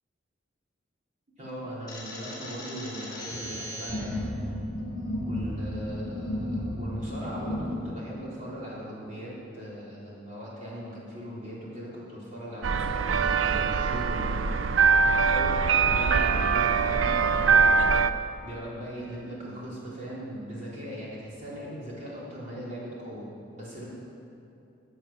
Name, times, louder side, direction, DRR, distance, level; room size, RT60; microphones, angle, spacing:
voice 1, 1.4-4.3 5.3-14.5 15.0-17.9 18.4-23.9, equal, 40° right, -7 dB, 3.8 m, -39 dB
sound 1, 1.9-7.7, left 1 dB, 20° left, 3.3 m, -34 dB
sound 2, 12.6-18.1, right 5 dB, 90° right, 0.5 m, -23 dB
14.5 x 8.0 x 7.4 m, 2.7 s
head